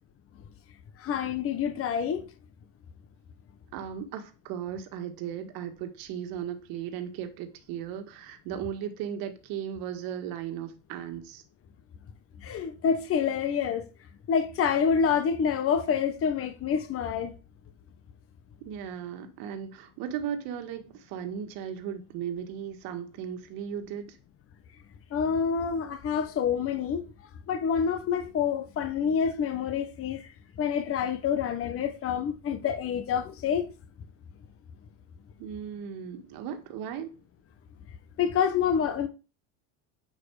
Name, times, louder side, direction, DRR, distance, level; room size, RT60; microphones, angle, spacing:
voice 1, 1.0-2.2 12.4-13.9 14.3-17.3 25.1-27.0 27.5-30.3 30.6-33.7 38.2-39.1, left 7 dB, 35° left, 1.2 m, -27 dB
voice 2, 3.7-11.4 18.6-24.2 35.4-37.1, right 9 dB, 65° right, 1.9 m, -36 dB
9.4 x 5.4 x 4.8 m
supercardioid pair, 115°, 38 cm